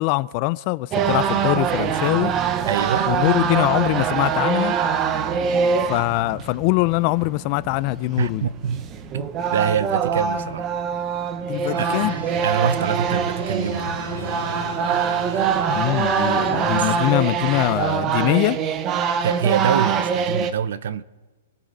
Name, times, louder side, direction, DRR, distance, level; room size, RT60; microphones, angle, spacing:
voice 1, 0.0-2.3 3.1-4.8 5.9-8.5 11.5-12.2 15.7-18.6, left 21 dB, 35° left, 0.4 m, -22 dB
sound 1, 0.9-20.5, right 7 dB, 20° right, 0.8 m, -24 dB
voice 2, 2.7-3.1 8.2-8.9 9.1-10.7 11.8-11.9 12.4-14.0 16.7-17.0 19.2-21.0, right 8 dB, 65° right, 0.8 m, -25 dB
sound 2, 3.8-18.6, left 9 dB, 55° left, 3.1 m, -45 dB
sound 3, 11.6-17.8, right 3 dB, 90° right, 3.5 m, -35 dB
27.5 x 12.5 x 4.0 m
hypercardioid pair, 160°, 0 cm